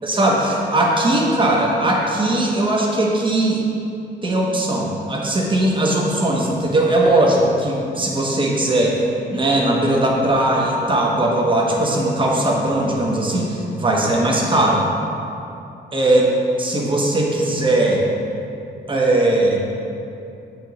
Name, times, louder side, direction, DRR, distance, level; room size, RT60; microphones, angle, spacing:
voice 1, 0.0-3.6 4.2-9.0 9.3-14.8 15.9-16.2 16.6-18.0 18.9-19.6, right 1 dB, 25° right, -2 dB, 1.1 m, -19 dB
7.4 x 4.9 x 4.0 m, 2.7 s
cardioid pair, 120°, 18 cm